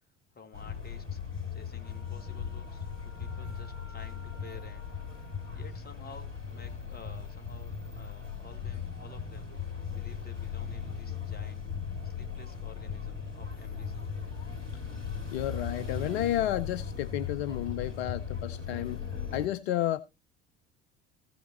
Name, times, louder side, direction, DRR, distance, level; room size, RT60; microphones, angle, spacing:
voice 1, 0.3-1.2 1.5-5.1 5.5-9.5 9.9-11.7 12.0-14.1, left 4 dB, 25° left, 2.4 m, -52 dB
sound 1, 0.5-19.5, left 6 dB, 90° right, 2.0 m, -38 dB
Wind instrument woodwind instrument, 1.8-6.0, left 3 dB, 85° left, 1.2 m, -56 dB
voice 2, 15.3-19.0 19.3-20.0, left 13 dB, 60° left, 0.6 m, -31 dB
15.0 x 5.7 x 4.2 m
figure-of-eight pair, 60°, 36 cm